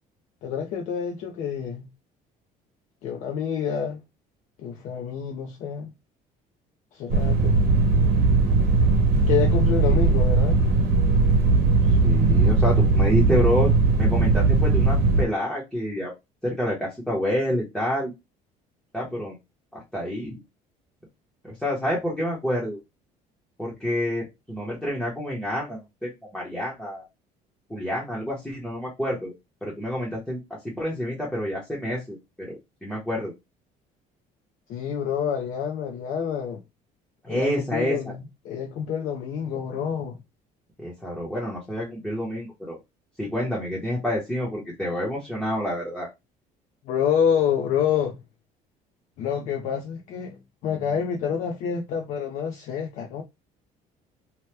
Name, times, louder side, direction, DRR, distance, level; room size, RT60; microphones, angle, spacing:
voice 1, 0.4-1.9 3.0-4.0 4.6-5.9 6.9-7.6 9.3-10.6 34.7-36.6 37.3-40.2 46.8-48.2 49.2-53.2, left 7 dB, 55° left, 0.5 m, -27 dB
sound 1, 7.1-15.2, right 3 dB, 85° right, 0.9 m, -19 dB
voice 2, 11.9-13.7 14.0-16.1 16.4-18.1 18.9-19.4 19.7-20.4 21.4-22.8 23.6-27.0 27.7-29.3 29.6-30.4 30.6-33.3 37.2-38.1 40.8-42.8 43.2-46.1, equal, ahead, 0.8 m, -28 dB
2.9 x 2.2 x 3.2 m
cardioid pair, 180°, 15 cm